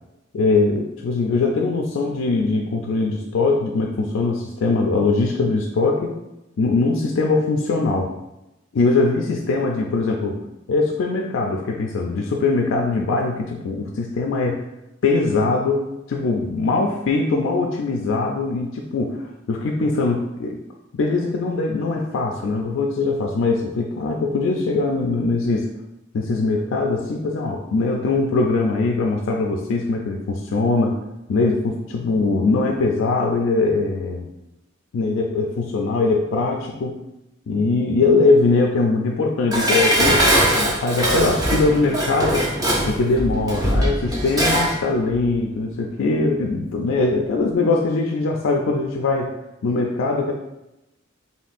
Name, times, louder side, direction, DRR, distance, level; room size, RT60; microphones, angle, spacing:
voice 1, 0.3-6.1 6.6-8.1 8.7-10.4 10.7-14.6 15.0-20.6 20.9-25.7 26.1-31.0 31.3-34.3 34.9-37.0 37.5-42.5 42.8-49.4 49.6-50.3, left 3 dB, 90° left, 1 dB, 0.4 m, -21 dB
Dishes pots and pans, 39.5-44.8 45.1-45.2, equal, 20° right, 0.6 m, -20 dB
4.2 x 3.6 x 2.5 m, 0.93 s
head